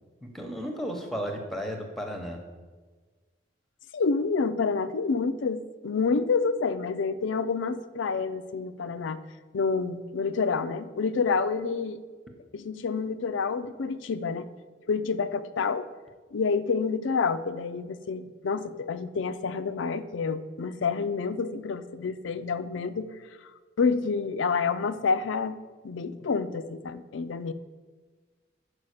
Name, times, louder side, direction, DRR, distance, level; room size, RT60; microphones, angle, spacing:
voice 1, 0.2-2.4, equal, ahead, 3 dB, 0.9 m, -34 dB
voice 2, 3.9-9.2 9.5-12.0 12.5-14.5 14.9-15.9 16.3-23.1 23.8-25.6 25.8-27.5, left 5 dB, 80° left, 13 dB, 0.4 m, -28 dB
5.6 x 4.9 x 6.5 m, 1.4 s
head